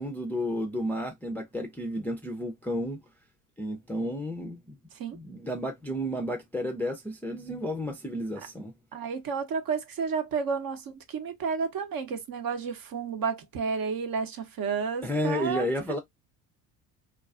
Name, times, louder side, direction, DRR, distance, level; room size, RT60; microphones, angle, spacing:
voice 1, 0.0-3.0 3.6-4.8 5.1-8.7 15.0-16.0, equal, 5° left, 0.4 m, -32 dB
voice 2, 8.9-15.7, right 5 dB, 50° right, 0.8 m, -31 dB
2.4 x 2.3 x 2.3 m
hypercardioid pair, 70°, 44 cm